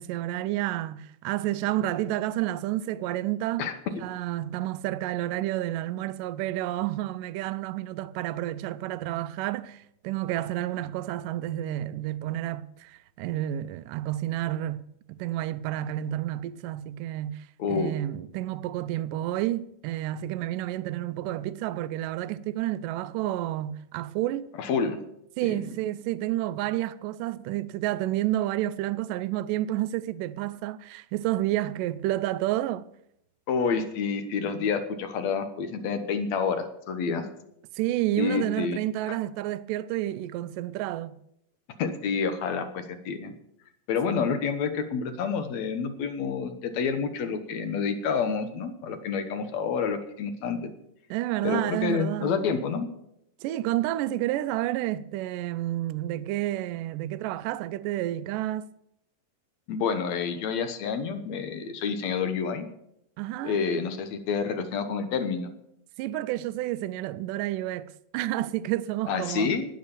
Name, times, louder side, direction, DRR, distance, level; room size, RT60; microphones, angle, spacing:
voice 1, 0.0-3.7 4.0-24.5 25.4-32.9 37.8-41.2 44.1-44.2 51.1-52.4 53.4-58.7 63.2-63.6 66.0-69.5, right 14 dB, 80° right, 2.1 m, -30 dB
voice 2, 17.6-17.9 24.6-25.0 33.5-37.3 38.2-38.8 39.1-39.2 41.8-43.3 43.9-50.7 51.4-52.9 59.7-62.7 63.4-65.5 69.1-69.7, left 5 dB, 65° left, 2.0 m, -28 dB
19.0 x 6.4 x 7.0 m
omnidirectional pair, 4.2 m